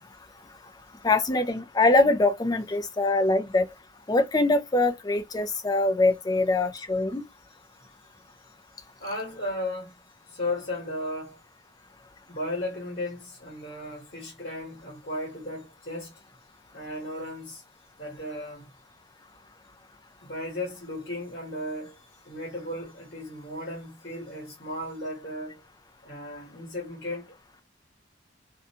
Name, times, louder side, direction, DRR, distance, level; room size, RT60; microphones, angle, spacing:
voice 1, 1.0-3.7 4.1-7.2, left 2 dB, 20° left, 0.4 m, -23 dB
voice 2, 9.0-10.0 10.3-11.4 12.3-16.1 16.7-17.6 18.0-18.7 20.2-22.0 22.2-25.6 26.0-27.3, left 1 dB, 45° left, 1.2 m, -35 dB
2.6 x 2.2 x 2.7 m
head